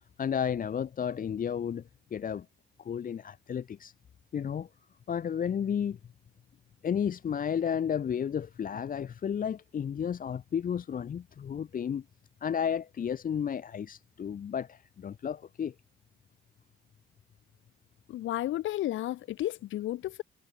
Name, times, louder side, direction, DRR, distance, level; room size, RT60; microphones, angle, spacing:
voice 1, 0.2-1.8 2.1-2.5 2.8-3.9 4.3-4.7 5.1-6.0 6.8-12.0 12.4-15.7, left 8 dB, 45° left, 0.9 m, -32 dB
voice 2, 18.1-20.2, left 14 dB, 75° left, 1.0 m, -32 dB
cardioid pair, 90°, 20 cm